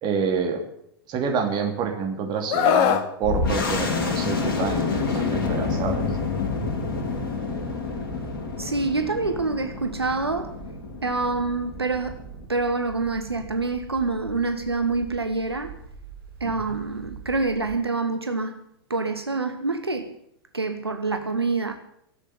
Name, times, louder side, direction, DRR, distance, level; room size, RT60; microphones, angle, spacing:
voice 1, 0.0-0.6 1.1-6.0 16.4-16.5, right 5 dB, 35° right, 2.9 m, -27 dB
Screaming, 2.5-3.1 4.5-4.8, left 9 dB, 40° left, 1.1 m, -21 dB
sound 1, 3.2-12.4, left 4 dB, 55° left, 2.8 m, -28 dB
sound 2, 7.1-17.8, right 4 dB, 65° right, 3.1 m, -44 dB
voice 2, 8.6-10.5 11.0-12.2 12.5-15.7 16.4-18.6 18.9-20.1 20.5-21.8, right 3 dB, 90° right, 1.1 m, -26 dB
12.0 x 8.3 x 9.5 m
figure-of-eight pair, 95°, 13 cm